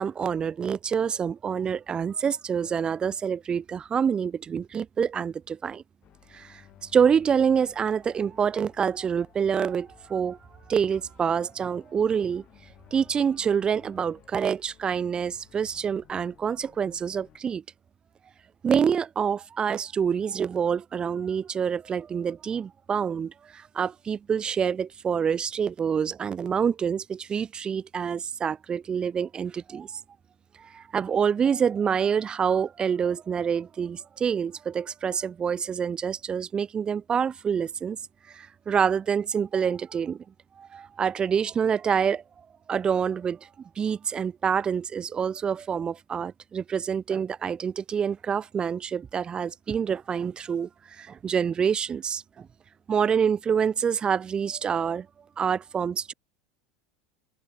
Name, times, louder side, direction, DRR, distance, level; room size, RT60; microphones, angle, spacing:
voice 1, 0.0-5.8 6.3-10.4 10.7-12.4 12.9-17.6 18.6-30.0 30.6-38.0 38.3-40.2 40.6-42.2 42.7-43.5 43.8-52.5 52.9-55.1 55.4-56.1, right 7 dB, 30° right, 1.4 m, -27 dB
sound 1, 6.0-17.4, left 12 dB, 45° left, 7.0 m, -57 dB
hypercardioid pair, 85°, 3 cm